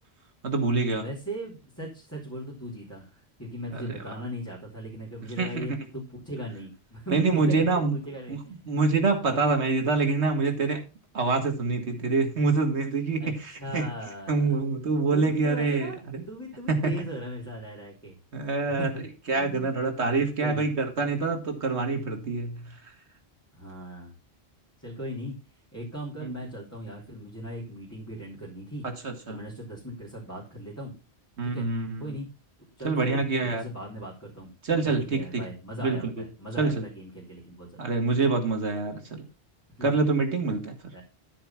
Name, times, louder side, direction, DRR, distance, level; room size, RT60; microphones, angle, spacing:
voice 1, 0.4-1.1 3.7-3.9 5.4-5.7 7.1-7.9 8.3-8.4 8.7-10.8 11.1-13.9 14.3-16.2 16.7-16.9 18.3-18.9 19.3-22.8 26.2-26.4 28.8-29.4 31.4-32.0 32.8-33.6 34.6-35.4 35.8-36.0 36.6-36.9 37.8-39.2 39.8-40.8, right 3 dB, 85° right, 4 dB, 2.1 m, -26 dB
voice 2, 1.0-8.3 9.2-9.5 13.2-13.3 13.6-14.3 15.1-16.0 16.3-18.2 18.7-19.0 19.3-20.7 23.6-24.1 24.8-25.3 25.7-28.9 29.3-30.9 31.4-31.7 32.0-32.3 32.8-34.5 34.8-37.9 39.8-39.9 40.9-41.0, right 1 dB, 15° left, -5 dB, 3.1 m, -38 dB
13.0 x 4.7 x 5.8 m, 0.32 s
omnidirectional pair, 1.1 m